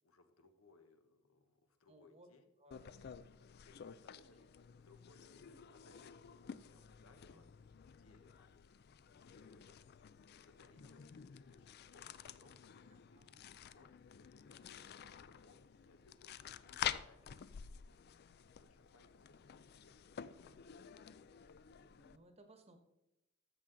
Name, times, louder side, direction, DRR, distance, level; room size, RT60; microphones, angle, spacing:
voice 1, 0.0-2.5 3.6-4.5 4.7-7.5 7.8-8.5 9.1-13.9 14.5-18.1 18.6-20.7, left 2 dB, 75° left, 7 dB, 1.1 m, -68 dB
voice 2, 1.9-2.3 2.6-3.2 4.0-4.2 5.5-5.7 7.3-7.4 13.1-13.4 21.4-22.8, right 1 dB, 30° right, 6 dB, 1.2 m, -64 dB
sound 1, 2.7-22.2, left 9 dB, 45° left, 0.4 m, -50 dB
13.0 x 7.7 x 3.9 m, 0.93 s
head